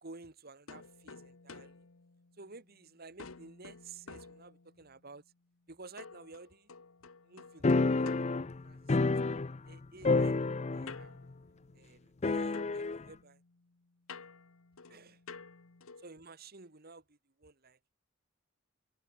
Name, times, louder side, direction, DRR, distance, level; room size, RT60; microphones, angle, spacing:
voice 1, 0.0-1.9 2.4-5.2 5.7-6.7 7.2-8.2 8.6-9.3 9.7-10.4 10.7-11.2 11.7-13.4 14.9-15.2 16.0-17.8, right 3 dB, 45° right, 1.7 m, -53 dB
sound 1, 0.7-2.8 3.2-5.0 6.0-9.2 10.9-12.2 12.5-16.2, left 4 dB, 80° left, 1.2 m, -52 dB
sound 2, 7.6-9.8 10.0-11.1 11.3-11.4 12.2-13.0, left 3 dB, 30° left, 0.5 m, -29 dB
head